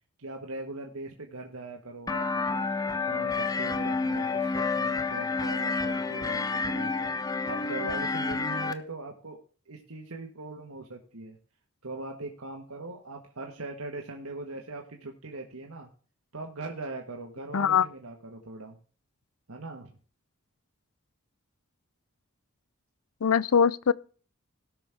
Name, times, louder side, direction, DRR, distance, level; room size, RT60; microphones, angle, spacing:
voice 1, 0.2-2.7 3.0-7.1 7.4-9.4 9.7-11.4 11.8-15.9 16.3-18.8 19.5-19.9, right 2 dB, 90° right, 1.6 m, -40 dB
sound 1, 2.1-8.7, left 4 dB, 15° left, 0.6 m, -29 dB
voice 2, 17.5-17.9 23.2-23.9, left 7 dB, 80° left, 0.5 m, -22 dB
17.5 x 6.2 x 3.6 m
head